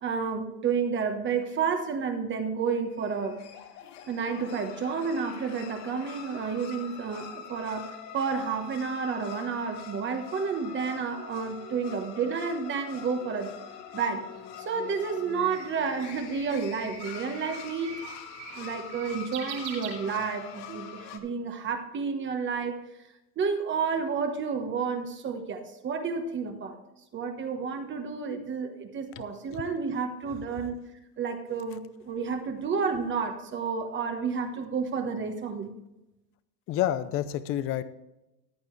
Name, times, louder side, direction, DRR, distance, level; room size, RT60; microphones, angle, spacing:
voice 1, 0.0-3.4 4.1-13.6 13.9-14.2 14.6-18.0 18.5-22.8 23.4-26.8 27.1-30.8 31.2-35.8, right 5 dB, 25° right, 5 dB, 1.2 m, -30 dB
sound 1, 2.9-21.2, left 8 dB, 70° left, 1.8 m, -44 dB
Bird, 14.4-20.6, right 7 dB, 80° right, 4.5 m, -44 dB
voice 2, 36.7-37.8, left 12 dB, 25° left, 14 dB, 0.6 m, -28 dB
14.5 x 10.5 x 3.2 m, 0.94 s
supercardioid pair, 140°, 50 cm